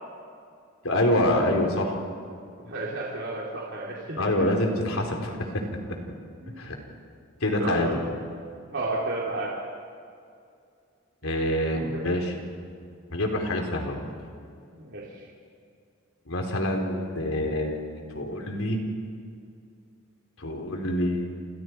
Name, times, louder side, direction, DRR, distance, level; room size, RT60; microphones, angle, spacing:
voice 1, 0.8-2.0 4.2-5.6 6.6-6.7 7.4-7.9 11.2-12.3 13.1-14.1 16.3-18.8 20.4-21.3, left 1 dB, 80° left, 2 dB, 3.9 m, -26 dB
voice 2, 2.6-4.5 5.3-5.4 6.4-6.7 7.6-8.0 8.7-9.5 11.7-12.1 14.7-15.3, right 2 dB, 60° right, -4 dB, 3.3 m, -33 dB
28.0 x 28.0 x 4.7 m, 2.3 s
head